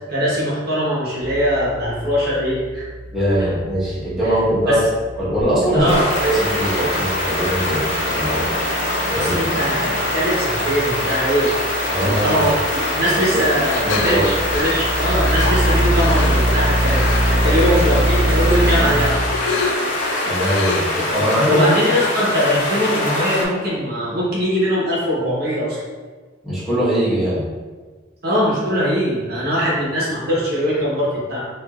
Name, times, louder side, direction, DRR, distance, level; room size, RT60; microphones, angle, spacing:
voice 1, 0.1-2.9 3.4-3.5 4.2-4.3 4.7-4.9 5.7-6.1 9.1-11.5 12.0-19.2 19.6-19.8 21.5-25.8 28.2-31.4, equal, 55° right, -6 dB, 1.0 m, -21 dB
sound 1, 1.2-19.1, right 1 dB, 20° right, 0.3 m, -24 dB
voice 2, 3.1-4.8 5.2-5.9 6.2-8.5 9.1-9.5 11.9-12.4 13.3-13.4 13.8-14.3 20.2-20.8 21.1-21.7 26.4-27.4, equal, ahead, -11 dB, 1.1 m, -21 dB
sound 2, 5.9-23.4, left 1 dB, 40° left, 0.7 m, -23 dB
sound 3, 13.6-16.3 16.9-17.4 17.7-21.1, left 4 dB, 75° left, 0.4 m, -28 dB
4.6 x 2.6 x 2.4 m, 1.4 s
head